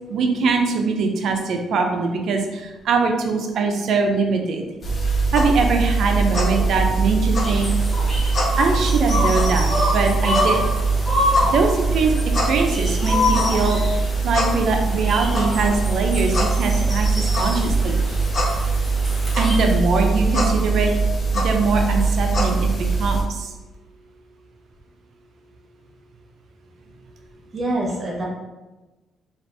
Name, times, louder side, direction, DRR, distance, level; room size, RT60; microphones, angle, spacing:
voice 1, 0.1-4.7 5.3-7.7 8.6-10.6 11.5-12.1 12.5-13.9 14.2-18.0 19.4-20.9 21.3-22.7 23.0-23.5, right 4 dB, 70° right, 3 dB, 0.5 m, -22 dB
sound 1, 4.8-23.2, right 3 dB, 50° left, 0.9 m, -21 dB
sound 2, 7.3-19.7, left 1 dB, 15° left, 1.3 m, -27 dB
voice 2, 27.5-28.2, right 1 dB, 40° right, -3 dB, 1.0 m, -25 dB
2.7 x 2.5 x 3.2 m, 1.1 s
cardioid pair, 90°, 0 cm